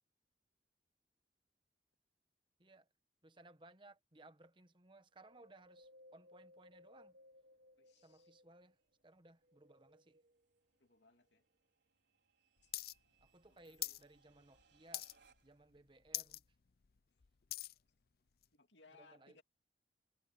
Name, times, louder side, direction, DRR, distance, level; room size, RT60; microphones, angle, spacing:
voice 1, 3.2-7.2 8.0-8.7 9.0-10.2 13.2-15.1 15.4-16.4 19.0-19.4, right 2 dB, 25° right, 1.2 m, -62 dB
Wind, 5.2-8.8 9.3-10.6 11.1-11.2, left 1 dB, 55° right, 1.5 m, -65 dB
sound 1, 5.8-15.7, right 5 dB, 80° right, 4.2 m, -77 dB
voice 2, 7.8-8.3 10.8-11.4 12.6-12.7 13.5-14.0 18.5-19.4, left 4 dB, 80° left, 2.7 m, -66 dB
sound 2, 12.7-12.9 13.2-14.0 14.4-14.6 14.9-15.4 15.7-15.8 16.1-16.4 16.8-17.8 18.4-18.5, left 15 dB, 60° left, 0.6 m, -43 dB
head